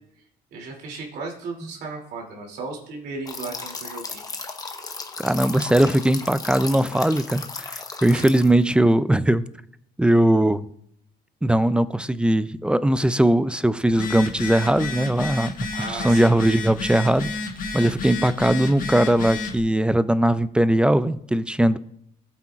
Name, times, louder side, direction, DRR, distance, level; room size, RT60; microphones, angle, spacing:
voice 1, 0.5-4.2 8.1-8.2 15.7-16.3, right 3 dB, 70° right, 0 dB, 2.8 m, -35 dB
sound 1, 3.3-8.7, left 3 dB, 20° left, 1.0 m, -35 dB
voice 2, 5.2-9.4 10.0-10.6 11.4-15.5 15.9-17.3 17.7-21.8, right 1 dB, 5° right, 15 dB, 0.3 m, -20 dB
Telephone, 13.9-19.6, left 4 dB, 55° left, 1.4 m, -31 dB
14.5 x 8.4 x 2.4 m, 0.72 s
cardioid pair, 110°, 17 cm